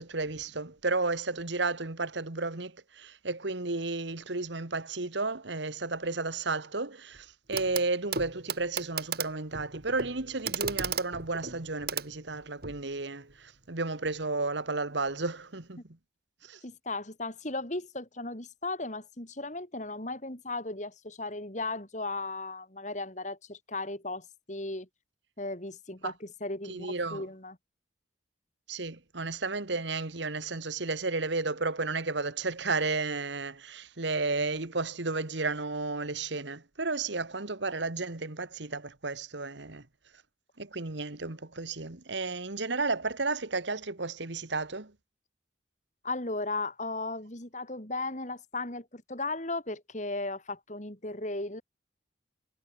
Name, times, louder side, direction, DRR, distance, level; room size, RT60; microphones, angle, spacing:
voice 1, 0.0-15.8 16.4-16.6 26.0-26.1 26.7-27.2 28.7-39.9 40.6-44.9, right 3 dB, 70° right, 1.8 m, -33 dB
Clock, 7.5-7.9 8.1-12.8 14.0-14.1, right 6 dB, 55° right, 2.4 m, -35 dB
voice 2, 16.6-24.9 25.4-27.6 46.0-51.6, left 2 dB, 40° left, 3.2 m, -36 dB
head